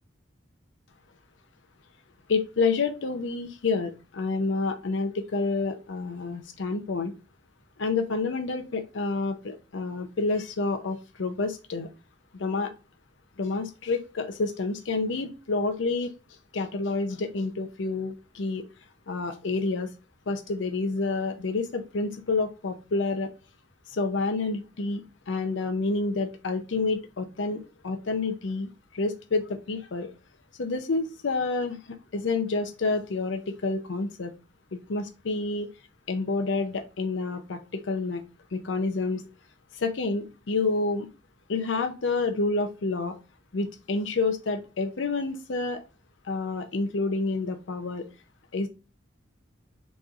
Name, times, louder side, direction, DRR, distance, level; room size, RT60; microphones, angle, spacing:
voice 1, 2.3-7.1 7.8-11.9 12.4-12.7 13.4-16.1 16.5-18.7 19.1-19.9 20.3-23.3 23.9-25.0 25.3-28.7 28.9-30.1 30.6-31.8 32.1-34.3 34.7-35.7 36.1-38.2 38.5-39.2 39.8-41.1 41.5-43.1 43.5-45.8 46.3-48.0 48.5-48.7, left 3 dB, 70° left, 6 dB, 0.6 m, -28 dB
6.2 x 3.0 x 2.4 m, 0.31 s
head